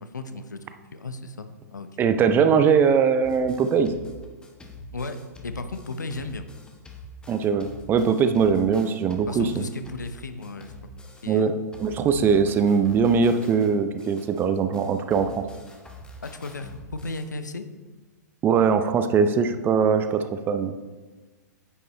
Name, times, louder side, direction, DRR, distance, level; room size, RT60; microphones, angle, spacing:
voice 1, 0.0-0.6 0.9-1.9 4.9-5.2 5.4-6.5 9.3-10.7 11.2-11.6 16.2-17.6, left 3 dB, 80° left, 9 dB, 0.7 m, -35 dB
voice 2, 2.0-3.9 7.3-9.6 11.3-11.5 11.8-15.4 18.4-20.8, right 6 dB, 20° right, 9 dB, 0.5 m, -21 dB
sound 1, 3.2-11.4 11.7-17.3, left 1 dB, 10° left, 1.0 m, -44 dB
9.5 x 5.3 x 3.2 m, 1.3 s
figure-of-eight pair, 110°, 10 cm